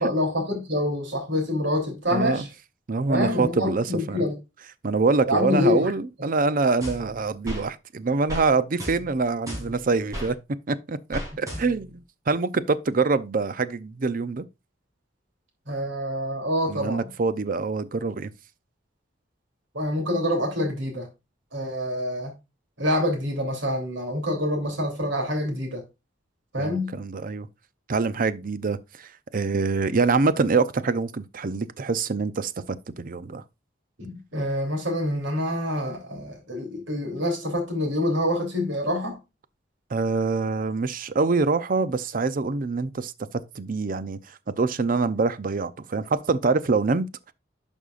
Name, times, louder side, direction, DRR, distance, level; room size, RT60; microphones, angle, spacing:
voice 1, 0.0-2.5 3.1-4.3 5.2-5.9 15.7-17.1 19.7-21.1 21.5-22.3 22.8-25.8 26.5-26.9 34.0-39.2, left 1 dB, 70° right, 3.2 m, -26 dB
voice 2, 2.1-2.5 2.9-4.3 4.8-10.4 10.7-14.4 16.7-18.3 26.6-27.5 27.9-33.4 39.9-43.1 43.5-47.3, right 4 dB, 45° right, 0.6 m, -25 dB
sound 1, 6.8-7.7 8.3-8.5 8.8-10.3 11.1-11.9, equal, 20° right, 3.4 m, -35 dB
11.0 x 5.4 x 2.5 m
head